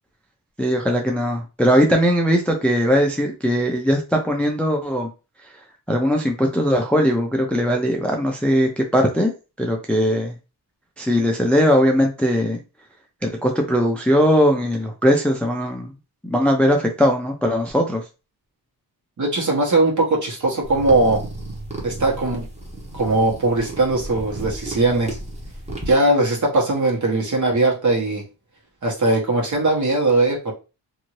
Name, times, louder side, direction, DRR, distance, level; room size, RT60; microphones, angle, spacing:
voice 1, 0.6-5.1 5.9-9.3 9.6-10.3 11.0-12.6 13.2-15.9 16.2-18.0, equal, 5° left, 2 dB, 0.4 m, -19 dB
voice 2, 19.2-21.2 21.8-22.5 22.9-25.2 25.9-28.2 28.8-30.5, right 2 dB, 45° right, -1 dB, 1.2 m, -20 dB
sound 1, 20.6-25.9, right 1 dB, 15° right, 1.0 m, -33 dB
2.7 x 2.6 x 3.0 m, 0.30 s
wide cardioid pair, 110°, 40 cm